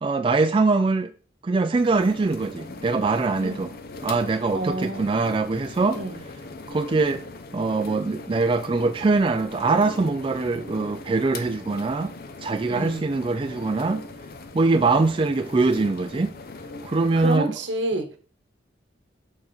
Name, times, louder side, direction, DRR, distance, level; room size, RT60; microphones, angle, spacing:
voice 1, 0.0-1.1 1.4-3.7 4.0-6.0 6.7-7.2 7.5-12.1 12.4-14.0 14.5-16.3 16.8-17.5, right 3 dB, 25° right, 0.3 m, -23 dB
sound 1, 1.7-17.4, left 2 dB, 50° left, 0.6 m, -40 dB
voice 2, 4.5-5.1 5.9-6.2 12.7-13.1 17.2-18.1, right 1 dB, 70° right, 1.0 m, -28 dB
6.8 x 4.2 x 3.9 m
head